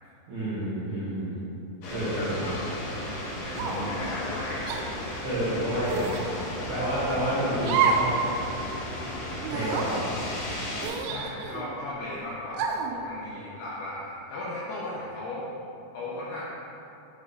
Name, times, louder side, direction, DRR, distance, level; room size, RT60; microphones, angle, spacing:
voice 1, 0.3-1.4 1.9-2.5 3.5-3.8 5.2-6.2 6.7-8.1 9.1-9.2 9.5-10.1, equal, 65° right, -12 dB, 2.0 m, -29 dB
sound 1, 1.8-10.9, left 1 dB, 65° left, 2.5 m, -35 dB
voice 2, 2.2-2.5 3.4-4.8 11.1-15.5 15.9-16.4, left 2 dB, 80° left, -7 dB, 2.3 m, -36 dB
sound 2, 3.6-4.0 4.7-4.8 5.9-6.3 7.6-8.1 8.5-8.6 9.4-9.9 10.8-11.7 12.5-13.0, right 6 dB, 85° right, 2.9 m, -28 dB
11.0 x 3.6 x 3.6 m, 2.8 s
omnidirectional pair, 5.4 m